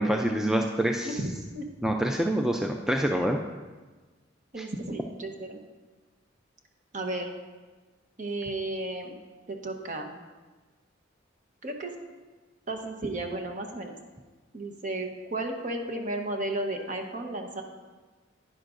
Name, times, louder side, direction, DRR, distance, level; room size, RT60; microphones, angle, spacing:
voice 1, 0.0-1.2 1.8-3.4 4.6-4.7, right 1 dB, 5° right, 2 dB, 0.4 m, -26 dB
voice 2, 1.0-1.6 4.5-5.6 6.9-7.3 8.2-9.2 9.5-10.2 11.6-11.9 12.7-14.0 14.5-17.6, right 2 dB, 40° right, 4 dB, 1.0 m, -33 dB
11.0 x 10.0 x 2.5 m, 1.3 s
head